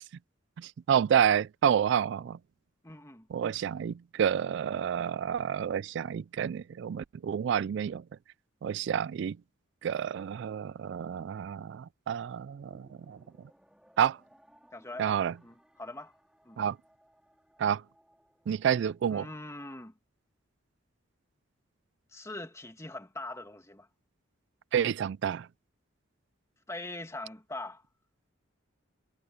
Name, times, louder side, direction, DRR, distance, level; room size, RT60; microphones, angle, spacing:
voice 1, 0.6-2.4 3.3-8.0 8.6-9.4 9.8-13.2 14.0-14.2 15.0-15.3 16.6-16.7 17.6-17.8 18.5-19.3 24.7-25.5, right 8 dB, 65° right, 0.3 m, -29 dB
voice 2, 2.8-3.3 14.7-15.2 15.4-16.1 16.4-16.6 19.1-19.9 22.1-23.9 26.7-27.8, left 2 dB, 15° left, 2.1 m, -42 dB
sound 1, 12.5-19.1, equal, 5° right, 4.0 m, -64 dB
head